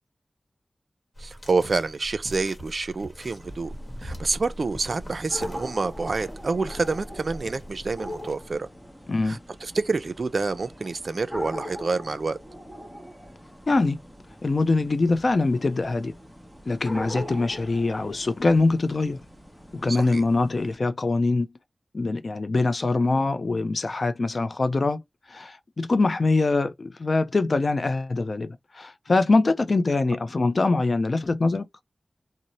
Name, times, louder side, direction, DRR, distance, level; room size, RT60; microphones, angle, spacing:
sound 1, 1.2-8.6, equal, 40° left, 1.0 m, -41 dB
voice 1, 1.2-3.7 4.0-8.7 9.2-12.4 19.9-20.2, right 4 dB, 65° right, 0.3 m, -28 dB
sound 2, 3.4-20.8, equal, 10° left, 0.7 m, -42 dB
voice 2, 9.1-9.4 13.7-14.0 14.4-16.1 16.7-19.2 19.7-21.5 21.9-25.0 25.3-31.7, left 3 dB, 55° left, 0.4 m, -23 dB
2.6 x 2.0 x 2.9 m
wide cardioid pair, 95°, 0 cm